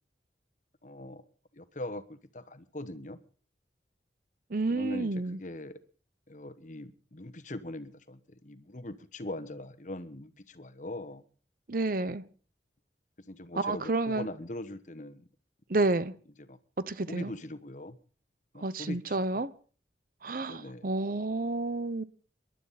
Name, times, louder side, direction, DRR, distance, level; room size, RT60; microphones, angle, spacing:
voice 1, 0.8-1.2 1.5-3.2 4.7-5.8 6.3-11.2 13.3-15.2 16.5-16.6 17.1-18.0 18.5-19.4 20.5-20.9, left 1 dB, 45° left, 1.1 m, -41 dB
voice 2, 4.5-5.4 11.7-12.2 13.6-14.3 15.7-16.1 16.9-17.3 18.6-19.5 20.2-22.0, right 2 dB, 50° right, 0.8 m, -30 dB
27.0 x 12.0 x 4.2 m
head